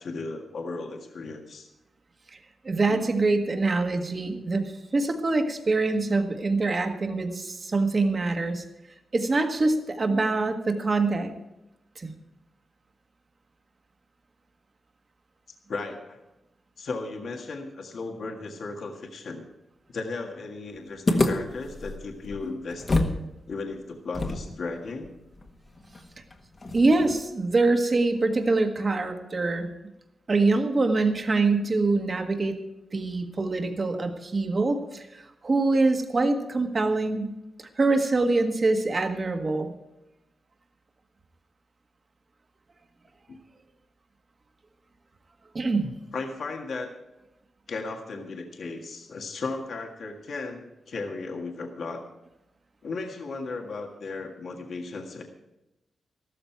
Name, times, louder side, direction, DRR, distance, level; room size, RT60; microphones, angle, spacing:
voice 1, 0.0-1.7 2.9-3.0 10.1-10.2 15.7-16.2 16.8-19.5 19.9-23.1 23.5-25.1 43.3-43.4 46.1-46.9 47.7-52.0 52.8-55.2, left 3 dB, 60° left, 2 dB, 1.8 m, -35 dB
voice 2, 2.6-8.6 9.1-11.3 11.9-12.1 26.7-29.7 30.3-32.6 32.9-37.3 37.6-39.7 45.5-45.9, right 3 dB, 35° right, 5 dB, 1.6 m, -24 dB
sound 1, 21.1-23.2 23.5-23.6 24.1-27.3, left 2 dB, 35° left, 1.5 m, -29 dB
14.0 x 13.0 x 4.6 m, 0.93 s
wide cardioid pair, 135°, 0 cm